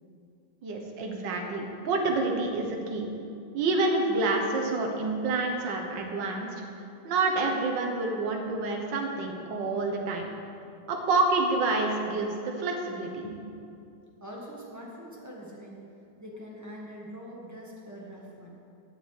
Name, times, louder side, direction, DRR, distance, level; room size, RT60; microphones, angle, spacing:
voice 1, 0.6-3.1 3.5-6.5 7.0-10.3 10.9-13.3, right 3 dB, 50° right, 1 dB, 1.4 m, -28 dB
voice 2, 14.2-15.8 16.2-18.6, equal, 10° right, -5 dB, 0.7 m, -43 dB
8.6 x 8.4 x 9.3 m, 2.6 s
omnidirectional pair, 3.7 m